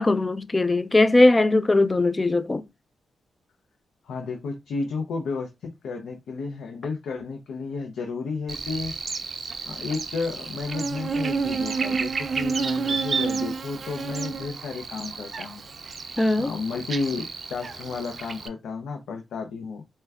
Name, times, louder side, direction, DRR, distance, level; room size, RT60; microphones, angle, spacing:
voice 1, 0.0-2.6 16.2-16.5, left 2 dB, 20° left, 0.3 m, -20 dB
voice 2, 4.0-8.9 9.7-15.6 16.4-19.8, left 4 dB, 90° left, 0.5 m, -32 dB
Buzz, 8.5-18.5, right 5 dB, 45° right, 0.4 m, -30 dB
4.2 x 2.1 x 2.3 m
cardioid pair, 100°, 0 cm